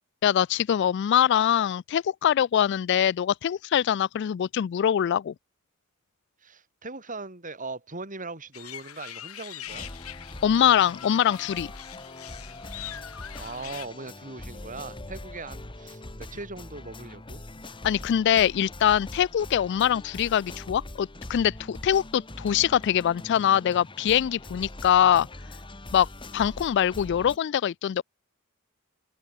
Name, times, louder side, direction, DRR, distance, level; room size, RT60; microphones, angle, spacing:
voice 1, 0.2-5.3 10.4-11.7 17.8-25.3 25.9-26.1 26.3-28.0, left 9 dB, 55° left, 0.3 m, -23 dB
voice 2, 6.4-9.9 13.4-17.4, right 3 dB, 40° right, 5.0 m, -40 dB
sound 1, 8.5-13.9, left 11 dB, 90° left, 1.8 m, -42 dB
sound 2, 9.7-27.4, left 1 dB, 25° left, 1.6 m, -42 dB
open air
head